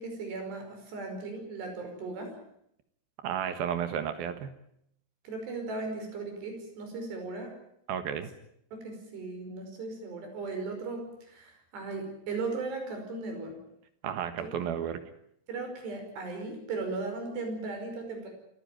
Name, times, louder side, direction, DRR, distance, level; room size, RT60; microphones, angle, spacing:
voice 1, 0.0-2.3 5.2-7.6 8.7-13.6 14.4-14.7 15.5-18.3, right 3 dB, 85° right, 4 dB, 7.5 m, -37 dB
voice 2, 3.2-4.5 7.9-8.3 14.0-15.0, right 8 dB, 70° right, 10 dB, 3.2 m, -32 dB
26.0 x 15.0 x 9.1 m, 0.73 s
omnidirectional pair, 4.7 m